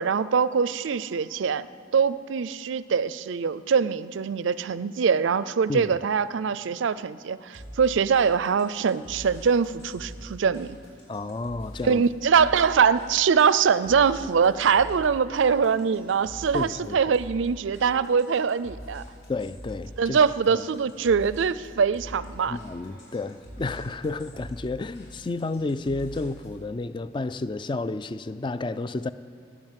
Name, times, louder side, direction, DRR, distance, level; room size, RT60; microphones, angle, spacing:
voice 1, 0.0-1.7 1.9-10.8 11.8-19.0 20.0-22.6, right 6 dB, 70° right, 17 dB, 0.4 m, -23 dB
sound 1, 7.5-26.6, equal, 60° left, 5.1 m, -44 dB
voice 2, 11.1-12.0 16.5-17.0 19.3-20.2 20.5-20.6 22.5-29.1, left 3 dB, 25° left, 14 dB, 0.3 m, -31 dB
18.5 x 9.2 x 7.5 m, 2.5 s
head